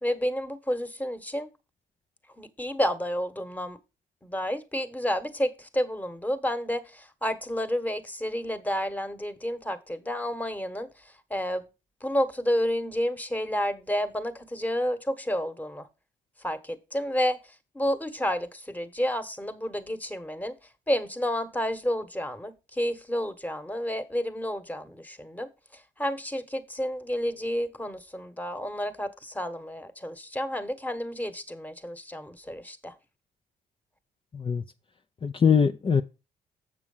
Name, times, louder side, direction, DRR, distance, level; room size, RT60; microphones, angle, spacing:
voice 1, 0.0-1.5 2.4-3.8 4.2-11.7 12.0-15.9 16.4-20.6 20.9-33.0, equal, 10° left, 1.4 m, -30 dB
voice 2, 34.3-34.6 35.2-36.0, left 6 dB, 35° left, 0.7 m, -22 dB
7.7 x 6.1 x 5.6 m
supercardioid pair, 65°, 15 cm